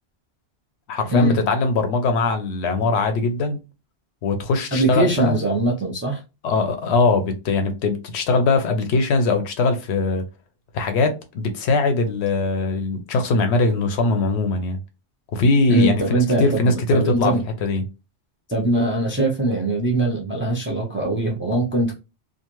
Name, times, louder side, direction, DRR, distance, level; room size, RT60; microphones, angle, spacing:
voice 1, 0.9-3.6 4.2-5.4 6.4-10.2 10.7-14.8 15.3-17.3 17.6-17.8, left 3 dB, 75° left, 0.9 m, -21 dB
voice 2, 4.7-6.2 15.7-17.4 18.5-22.0, right 2 dB, 15° right, 0.5 m, -21 dB
2.5 x 2.4 x 3.0 m
omnidirectional pair, 1.1 m